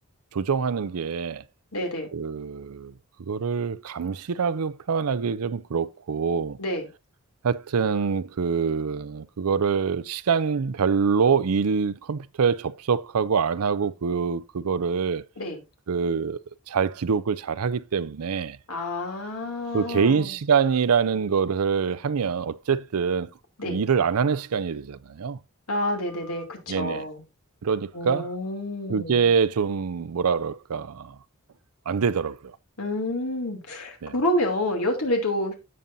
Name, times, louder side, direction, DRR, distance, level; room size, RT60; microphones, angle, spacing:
voice 1, 0.3-1.4 2.1-2.9 3.3-6.6 7.4-15.2 15.9-16.4 16.7-18.6 19.7-23.3 23.6-25.4 26.7-27.1 27.6-28.3 28.9-31.2 31.9-32.4 34.0-34.1, right 6 dB, 90° right, 0.5 m, -25 dB
voice 2, 1.7-2.1 6.6-6.9 15.4-15.6 18.7-20.3 23.6-23.8 25.7-27.2 27.9-29.3 32.8-35.5, left 1 dB, 85° left, 3.0 m, -28 dB
16.0 x 5.4 x 2.7 m
head